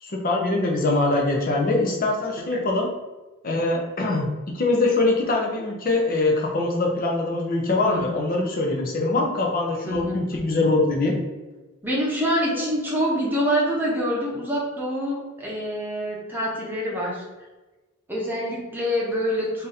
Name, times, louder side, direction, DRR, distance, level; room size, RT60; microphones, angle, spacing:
voice 1, 0.0-2.9 3.4-11.1 12.5-12.6, left 2 dB, 40° left, 0 dB, 0.6 m, -23 dB
voice 2, 7.8-8.4 9.8-10.2 11.8-17.2 18.1-19.7, equal, 10° right, -4 dB, 0.9 m, -26 dB
3.8 x 2.7 x 4.0 m, 1.2 s
head